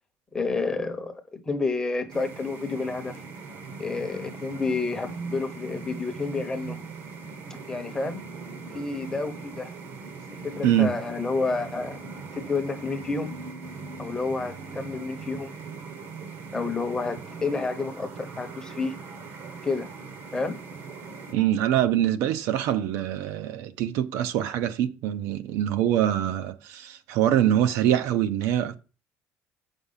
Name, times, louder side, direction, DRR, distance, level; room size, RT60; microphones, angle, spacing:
voice 1, 0.3-3.2 3.8-6.8 7.5-8.2 8.7-9.7 10.4-12.0 12.3-13.3 14.0-15.5 16.5-19.0 19.6-19.9 20.3-20.6, left 3 dB, 10° left, 0.9 m, -30 dB
sound 1, 2.1-21.3, right 4 dB, 50° right, 1.0 m, -40 dB
voice 2, 10.6-11.0 21.3-28.7, right 11 dB, 65° right, 0.6 m, -24 dB
7.1 x 5.3 x 5.6 m
cardioid pair, 175°, 5 cm